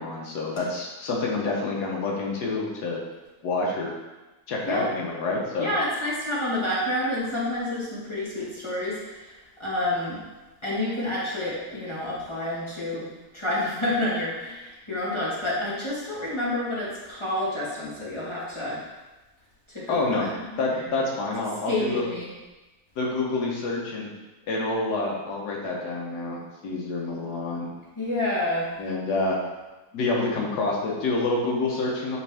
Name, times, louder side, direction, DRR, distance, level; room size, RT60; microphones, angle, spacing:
voice 1, 0.0-3.0 3.4-3.9 4.5-5.7 19.9-20.3 20.6-22.1 23.0-24.1 24.5-27.7 28.8-29.4 29.9-32.2, left 3 dB, 85° left, -2 dB, 1.6 m, -27 dB
voice 2, 5.6-10.2 10.6-13.1 13.3-18.8 19.7-20.6 21.7-22.3 28.0-28.7, left 1 dB, 20° left, -7 dB, 1.5 m, -29 dB
8.8 x 3.5 x 3.4 m, 1.1 s
omnidirectional pair, 1.7 m